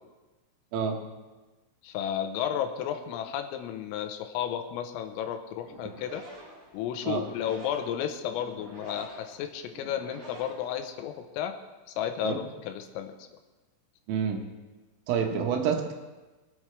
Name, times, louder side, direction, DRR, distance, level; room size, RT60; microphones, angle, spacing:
voice 1, 1.8-6.2 6.7-11.6 11.9-13.3, left 9 dB, 85° left, 6 dB, 3.6 m, -33 dB
sound 1, 5.6-11.3, right 1 dB, 55° right, 0.9 m, -49 dB
voice 2, 14.1-14.4 15.1-15.9, right 7 dB, 85° right, 2 dB, 3.9 m, -28 dB
23.5 x 8.8 x 3.3 m, 1.2 s
omnidirectional pair, 5.9 m